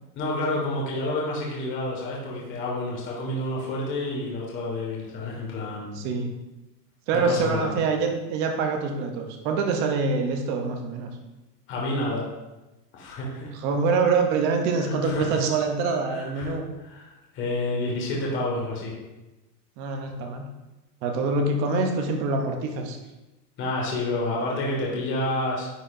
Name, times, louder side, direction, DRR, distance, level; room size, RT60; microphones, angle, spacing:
voice 1, 0.1-6.0 7.1-7.7 11.7-12.2 12.9-13.5 14.8-15.4 16.1-16.5 16.8-18.9 23.6-25.7, left 2 dB, 25° left, -3 dB, 1.4 m, -29 dB
voice 2, 5.9-6.3 7.1-11.1 13.5-16.6 19.8-20.5 21.0-23.0, right 4 dB, 20° right, 4 dB, 0.5 m, -25 dB
10.0 x 4.5 x 2.4 m, 1.0 s
supercardioid pair, 155°, 50 cm